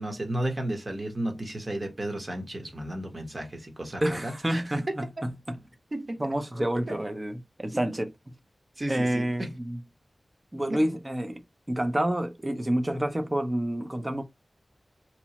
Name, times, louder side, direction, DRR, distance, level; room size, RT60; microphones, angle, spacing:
voice 1, 0.0-4.8 5.9-6.2 6.9-7.0 8.8-9.5 10.7-10.8, right 1 dB, 40° right, 0.9 m, -33 dB
voice 2, 4.0-5.6 6.2-8.1 8.9-9.8 10.5-11.4 11.7-14.2, right 1 dB, 25° right, 0.5 m, -28 dB
2.9 x 2.0 x 2.8 m
wide cardioid pair, 65°, 0 cm